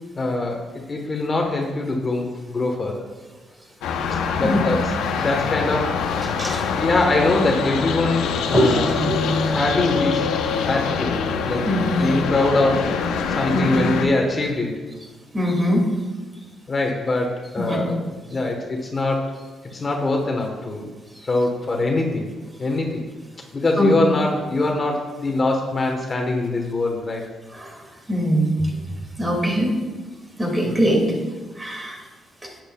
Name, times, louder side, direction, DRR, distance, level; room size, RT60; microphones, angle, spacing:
voice 1, 0.2-0.6 0.9-3.1 4.3-6.4 6.8-8.9 9.5-10.3 10.6-11.1 11.5-11.7 12.0-13.0 13.3-14.8 16.7-19.4 19.7-20.9 21.2-22.3 22.6-23.0 23.5-27.2 30.6-31.0, left 2 dB, 35° left, 2 dB, 1.2 m, -23 dB
sound 1, 3.8-14.1, left 5 dB, 90° left, 0.8 m, -24 dB
voice 2, 11.7-12.1 13.5-13.9 15.3-15.8 17.6-17.8 23.8-24.0 27.5-27.8 28.1-28.7 29.2-29.7 30.4-31.0 31.6-32.0 32.4-32.5, equal, 20° right, 0 dB, 2.4 m, -21 dB
11.0 x 8.9 x 2.3 m, 1.3 s
cardioid pair, 90°, 0 cm